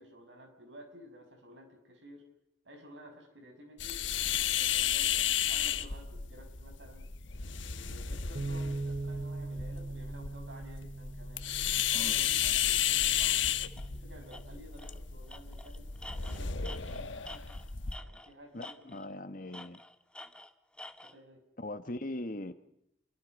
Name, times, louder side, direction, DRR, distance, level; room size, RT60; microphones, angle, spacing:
voice 1, 0.0-2.2 2.6-7.1 7.6-11.4 11.9-15.9 16.2-17.4 18.0-18.8 21.0-21.4, equal, 75° right, 4 dB, 6.5 m, -53 dB
sound 1, 3.8-18.0, left 10 dB, 85° left, 1.1 m, -33 dB
Bass guitar, 8.4-14.6, right 2 dB, 50° right, 1.8 m, -41 dB
Tools, 13.8-13.9 14.3-14.4 14.8-15.0 15.3-18.3 18.6-19.1 19.5-21.2, left 1 dB, 5° left, 0.9 m, -48 dB
voice 2, 18.5-19.8 21.6-22.5, left 1 dB, 45° left, 11 dB, 1.2 m, -40 dB
28.5 x 23.5 x 5.3 m, 0.81 s
head